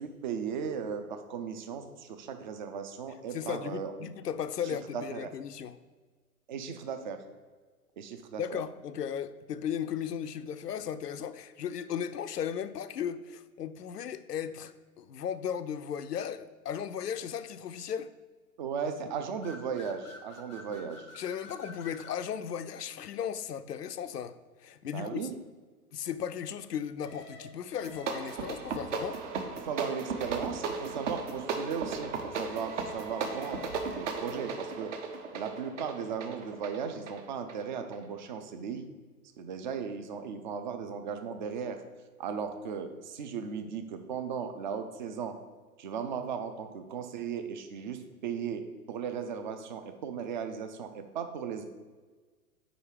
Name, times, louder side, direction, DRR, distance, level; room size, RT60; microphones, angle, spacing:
voice 1, 0.0-3.9 4.9-5.3 6.5-7.2 8.0-8.6 18.6-21.1 24.9-25.4 29.6-33.6 33.9-34.9 35.3-38.9 39.4-41.8 42.2-45.3 45.8-51.6, right 6 dB, 35° right, 0.4 m, -36 dB
voice 2, 3.3-5.7 8.4-18.1 21.2-24.3 24.6-25.2 25.9-29.2, left 8 dB, 80° left, 0.5 m, -36 dB
sound 1, 19.4-22.2 27.0-28.6 32.4-34.3, left 2 dB, 20° left, 0.4 m, -50 dB
sound 2, 27.7-38.1, right 5 dB, 50° right, 0.9 m, -36 dB
5.1 x 4.7 x 4.8 m
figure-of-eight pair, 110°, 46 cm